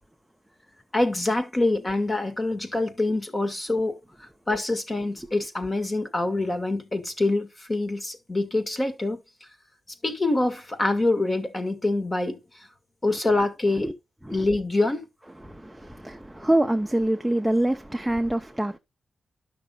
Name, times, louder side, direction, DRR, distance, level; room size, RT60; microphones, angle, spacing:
voice 1, 0.9-9.2 10.0-12.7 13.0-13.9 14.3-15.0, left 2 dB, 25° left, 2.0 m, -25 dB
voice 2, 15.4-18.8, right 1 dB, 5° right, 0.7 m, -25 dB
12.0 x 6.0 x 3.9 m
wide cardioid pair, 130°, 0 cm